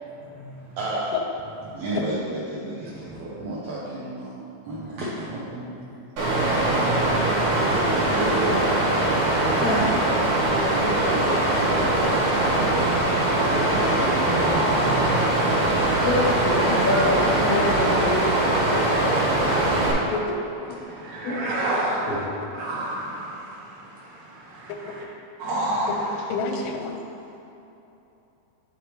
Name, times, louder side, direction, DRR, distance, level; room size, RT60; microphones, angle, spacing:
voice 1, 0.8-1.1 1.7-4.4 4.6-5.6 8.0-8.6 10.5-12.8 13.4-15.3 18.8-20.0, right 1 dB, 75° right, -8 dB, 1.7 m, -32 dB
voice 2, 6.2-8.2 9.2-9.7 10.5-10.6 14.4-15.2 15.6-16.0 20.8-22.3 22.6-23.8 24.0-25.0 25.4-26.2, right 1 dB, 55° right, -8 dB, 2.0 m, -31 dB
Water, 6.2-19.9, right 1 dB, 90° right, 3.2 m, -22 dB
voice 3, 9.6-9.9 16.0-17.9 21.2-21.4 22.1-22.2, left 1 dB, 70° left, -8 dB, 2.8 m, -25 dB
voice 4, 17.2-18.3 20.1-20.4 20.7-20.8 24.7-24.8 25.9-26.0 26.3-27.0, left 3 dB, 90° left, 4 dB, 2.5 m, -29 dB
9.5 x 5.1 x 3.1 m, 2.9 s
omnidirectional pair, 4.3 m